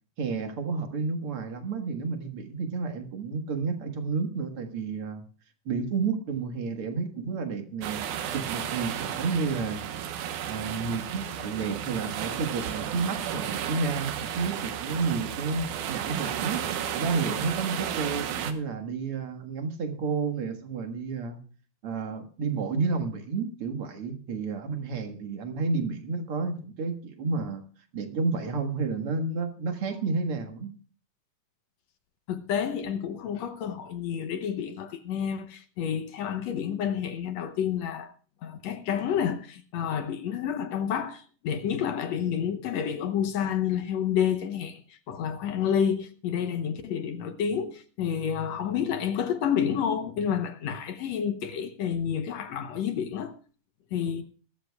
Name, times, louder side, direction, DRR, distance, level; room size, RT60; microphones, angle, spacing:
voice 1, 0.2-5.3 5.7-8.0 8.3-10.0 10.5-16.6 16.9-21.4 21.8-27.6 27.9-30.7, right 4 dB, 50° right, 2.1 m, -31 dB
sound 1, 7.8-18.5, right 9 dB, 75° right, 2.5 m, -33 dB
voice 2, 32.3-38.1 38.4-53.4 53.9-54.2, left 8 dB, 65° left, 1.9 m, -29 dB
21.0 x 13.0 x 2.3 m
omnidirectional pair, 3.7 m